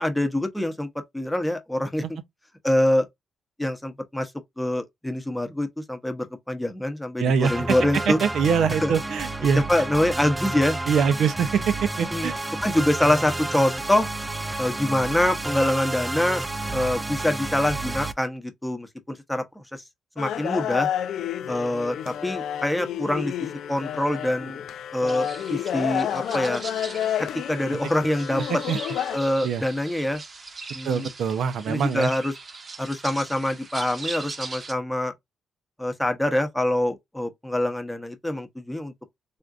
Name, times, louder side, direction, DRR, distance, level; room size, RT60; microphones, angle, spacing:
voice 1, 0.0-2.0 2.6-3.1 3.6-4.3 4.6-8.2 8.8-8.9 9.7-10.8 12.1-12.3 12.6-14.1 14.6-16.4 16.7-19.4 19.7-19.8 20.2-20.9 21.5-23.3 23.7-24.6 24.9-26.6 27.2-28.6 29.1-30.2 30.7-31.1 31.7-32.3 32.8-35.1 35.8-38.9, left 1 dB, 5° left, 0.7 m, -25 dB
voice 2, 7.2-7.5 7.9-9.6 10.9-12.3 28.7-28.8 29.4-29.6 30.8-32.1, right 6 dB, 75° right, 0.5 m, -23 dB
sound 1, 7.4-18.1, right 2 dB, 10° right, 0.3 m, -31 dB
sound 2, 20.2-29.2, left 10 dB, 75° left, 0.3 m, -30 dB
sound 3, 25.1-34.7, right 4 dB, 35° right, 0.8 m, -40 dB
3.5 x 2.5 x 2.4 m
cardioid pair, 100°, 0 cm